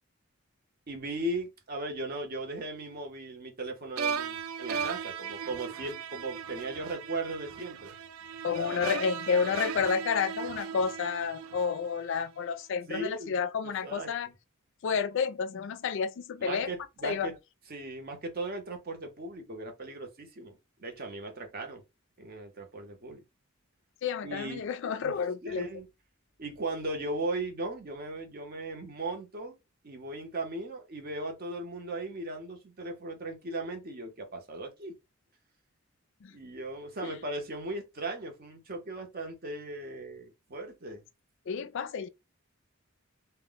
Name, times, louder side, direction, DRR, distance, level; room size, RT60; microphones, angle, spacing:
voice 1, 0.9-7.9 12.9-13.4 13.6-14.1 16.4-17.4 17.7-21.8 22.2-23.2 24.2-24.7 25.0-25.2 25.4-25.9 26.4-29.6 29.8-34.9 36.3-41.0, right 2 dB, 45° right, 0.8 m, -37 dB
sound 1, 4.0-12.2, right 6 dB, 80° right, 0.3 m, -37 dB
voice 2, 8.4-14.3 14.8-16.7 17.0-17.3 24.0-25.7 36.2-36.3 37.0-37.1 41.5-42.1, left 6 dB, 60° left, 0.4 m, -30 dB
2.1 x 2.1 x 3.8 m
head